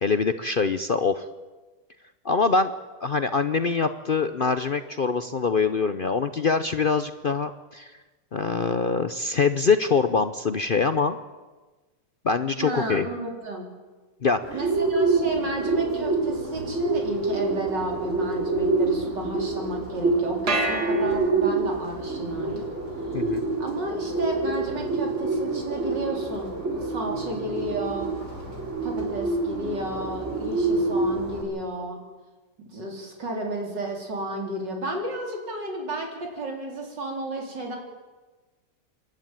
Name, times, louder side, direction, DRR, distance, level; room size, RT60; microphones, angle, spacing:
voice 1, 0.0-1.2 2.2-2.7 3.0-7.9 8.3-11.2 12.2-13.1 14.2-14.4 23.1-23.4, left 4 dB, 60° left, 11 dB, 0.5 m, -24 dB
voice 2, 12.5-13.7 14.5-22.7 23.6-28.1 28.8-32.0 32.7-37.8, right 1 dB, 80° right, 1 dB, 4.7 m, -32 dB
Bird, 14.4-31.4, right 3 dB, 40° right, 4.4 m, -27 dB
sound 1, 20.5-21.8, right 2 dB, 65° right, 3.4 m, -28 dB
27.0 x 12.0 x 9.1 m, 1.3 s
omnidirectional pair, 1.9 m